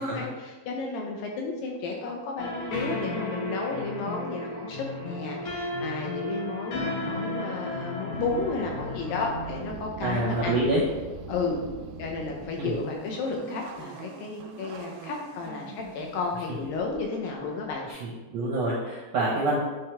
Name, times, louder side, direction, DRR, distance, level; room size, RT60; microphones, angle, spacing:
voice 1, 0.0-10.6 11.3-11.6 12.0-17.8, left 4 dB, 75° left, 0 dB, 2.2 m, -32 dB
sound 1, 2.4-9.6, left 1 dB, 55° left, 2.2 m, -34 dB
sound 2, 8.1-17.9, right 5 dB, 85° right, 2.6 m, -43 dB
voice 2, 10.0-10.8 12.6-12.7 17.9-19.6, right 2 dB, 70° right, -6 dB, 1.6 m, -27 dB
9.5 x 3.8 x 3.3 m, 1.2 s
omnidirectional pair, 4.6 m